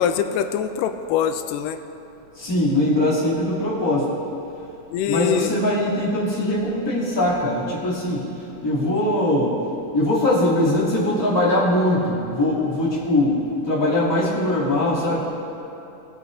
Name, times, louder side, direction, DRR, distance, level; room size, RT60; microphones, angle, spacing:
voice 1, 0.0-1.8 4.9-5.5 8.8-9.0, left 9 dB, 90° left, 8 dB, 2.2 m, -23 dB
voice 2, 2.4-4.0 5.1-8.2 8.6-9.5 9.9-13.4 13.7-15.2, left 1 dB, 10° left, -10 dB, 2.4 m, -21 dB
19.5 x 8.3 x 2.7 m, 2.9 s
omnidirectional pair, 3.7 m